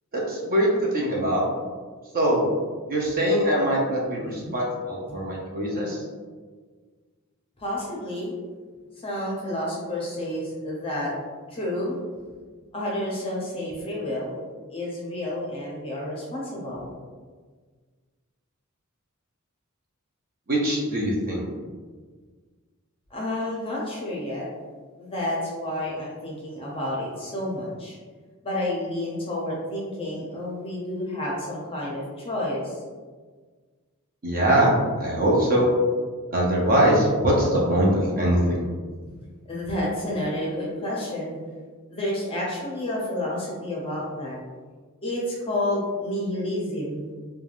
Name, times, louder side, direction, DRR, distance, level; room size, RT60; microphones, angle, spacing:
voice 1, 0.1-1.5 2.1-2.5 2.9-6.0 20.5-21.4 34.2-35.7 36.3-38.7, right 1 dB, 40° right, -3 dB, 0.5 m, -22 dB
voice 2, 4.2-4.5 5.1-5.2 7.6-8.3 9.0-11.1 11.5-12.0 12.7-14.4 14.7-16.9 23.1-24.4 25.0-28.0 28.4-32.8 35.1-35.2 39.5-41.4 41.9-44.4 45.0-47.1, left 1 dB, 25° left, -4 dB, 0.6 m, -30 dB
3.2 x 2.2 x 2.4 m, 1.5 s
head